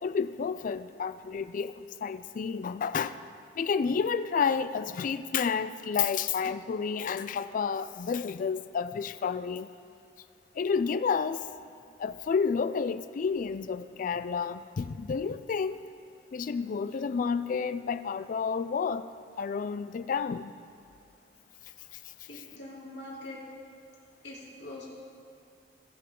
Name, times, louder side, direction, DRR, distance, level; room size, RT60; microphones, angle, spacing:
voice 1, 0.0-3.2 3.6-9.7 10.5-11.4 12.0-15.9 16.3-19.1 19.4-20.5, left 6 dB, 50° left, 13 dB, 0.3 m, -30 dB
voice 2, 22.3-23.4 24.2-24.9, left 2 dB, 85° left, -5 dB, 2.8 m, -43 dB
19.5 x 6.8 x 3.8 m, 2.4 s
head